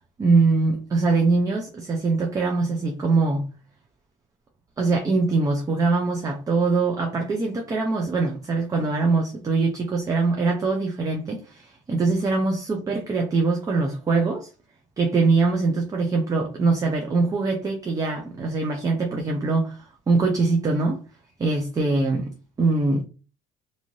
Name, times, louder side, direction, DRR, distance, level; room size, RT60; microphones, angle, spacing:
voice 1, 0.2-3.5 4.8-14.5 15.0-21.0 21.4-23.0, right 3 dB, 20° right, 0.4 m, -23 dB
2.6 x 2.5 x 3.0 m
cardioid pair, 140°, 18 cm